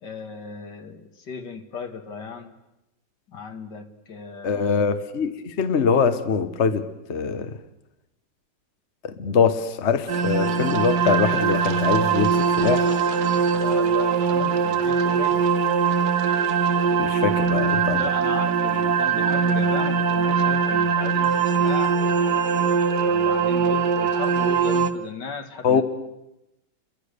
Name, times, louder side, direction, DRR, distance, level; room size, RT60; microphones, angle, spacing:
voice 1, 0.0-2.6 3.3-4.8 13.5-15.4 17.9-22.4 23.0-25.8, left 5 dB, 70° left, 2.4 m, -36 dB
voice 2, 4.4-7.6 9.0-12.9 17.0-18.1 25.6-25.8, left 5 dB, 45° left, 1.3 m, -23 dB
sound 1, 10.1-24.9, right 5 dB, 65° right, 1.6 m, -21 dB
29.0 x 23.0 x 6.7 m
omnidirectional pair, 1.9 m